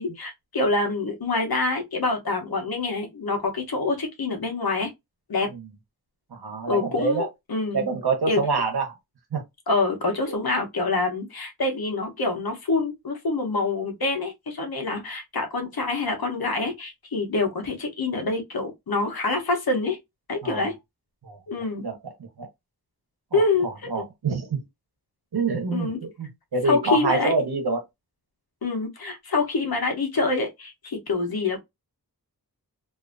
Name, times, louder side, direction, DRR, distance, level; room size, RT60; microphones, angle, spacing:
voice 1, 0.0-4.9 5.3-5.5 6.7-7.9 8.3-8.4 9.7-20.0 20.3-20.8 21.5-21.9 23.3-24.0 25.7-26.0 26.6-27.3 28.6-31.6, left 3 dB, 75° left, 0.9 m, -26 dB
voice 2, 6.3-7.3 7.7-8.8 9.3-9.4 10.3-10.4 20.4-20.6 21.2-21.4 21.8-21.9 22.4-22.5 23.3-24.6 25.3-25.9 26.2-27.8, right 3 dB, 85° right, 1.0 m, -26 dB
2.6 x 2.5 x 2.4 m
wide cardioid pair, 70°, 37 cm